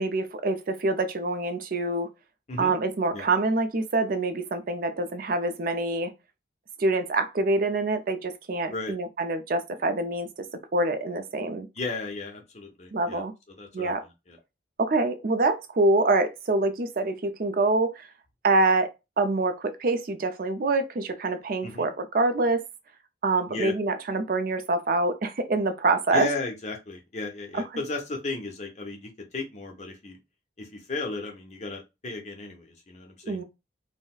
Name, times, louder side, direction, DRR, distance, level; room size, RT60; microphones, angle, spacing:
voice 1, 0.0-2.1 2.6-6.1 6.8-10.5 10.7-11.7 12.9-13.3 13.7-14.0 14.8-18.1 18.4-18.9 19.2-22.6 23.2-26.3 27.5-27.6 33.3-33.4, right 2 dB, 50° right, 0.4 m, -25 dB
voice 2, 11.8-13.2 13.6-14.4 21.6-21.9 23.5-23.7 26.1-30.2 30.6-33.4, left 3 dB, 40° left, 0.8 m, -35 dB
3.8 x 2.1 x 2.4 m
head